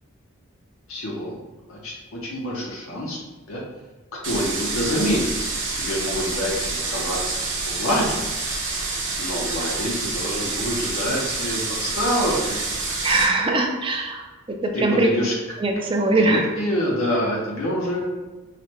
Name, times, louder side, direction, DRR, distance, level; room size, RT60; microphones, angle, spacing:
voice 1, 0.9-1.3 1.7-3.2 3.5-3.6 4.2-5.2 5.8-8.2 9.2-12.9 14.7-15.3 16.2-18.1, equal, 75° left, -3 dB, 0.7 m, -26 dB
sound 1, 4.2-13.2, right 3 dB, 60° right, 0.9 m, -28 dB
voice 2, 13.0-14.2 14.6-15.1 15.6-16.5, right 2 dB, 25° right, 3 dB, 0.3 m, -21 dB
4.8 x 2.1 x 2.9 m, 1.2 s
head